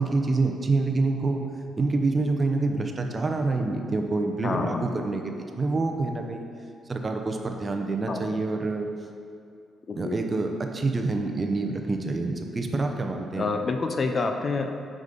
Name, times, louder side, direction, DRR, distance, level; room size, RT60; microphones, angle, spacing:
voice 1, 0.0-1.4 1.8-6.4 6.9-8.9 10.0-13.5, right 3 dB, 30° right, 4 dB, 0.7 m, -27 dB
voice 2, 4.4-4.8 8.1-8.2 9.9-10.2 13.4-14.7, left 4 dB, 40° left, 5 dB, 0.6 m, -27 dB
6.4 x 5.1 x 5.2 m, 2.4 s
cardioid pair, 90°, 0 cm